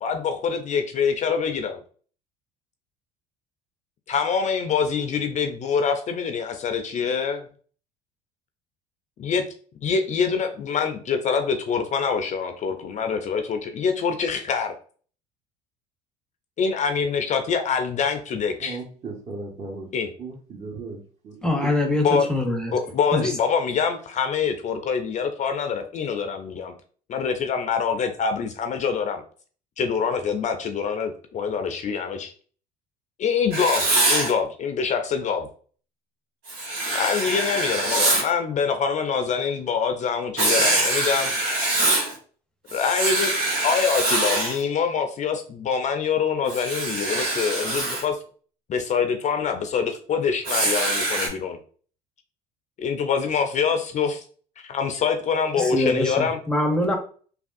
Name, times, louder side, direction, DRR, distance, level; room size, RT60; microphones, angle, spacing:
voice 1, 0.0-1.8 4.1-7.5 9.2-9.4 9.8-14.7 16.6-18.8 19.9-20.1 22.0-22.3 22.7-26.7 27.1-29.2 29.8-32.3 33.2-35.5 36.9-41.3 42.7-43.3 43.6-48.2 48.7-51.6 52.8-54.2 54.6-56.4, left 6 dB, 40° left, 6 dB, 0.4 m, -25 dB
voice 2, 18.6-19.9 20.2-21.0 21.2-21.4, right 3 dB, 35° right, 0 dB, 1.1 m, -36 dB
voice 3, 21.4-22.7 23.1-23.3 55.6-56.9, left 1 dB, 5° left, 2 dB, 0.7 m, -24 dB
Writing, 33.5-34.3 36.5-38.3 40.4-42.1 42.7-44.6 46.5-48.0 50.4-51.3, right 2 dB, 80° right, 1.2 m, -24 dB
3.3 x 2.3 x 2.5 m, 0.43 s
supercardioid pair, 80°, 19 cm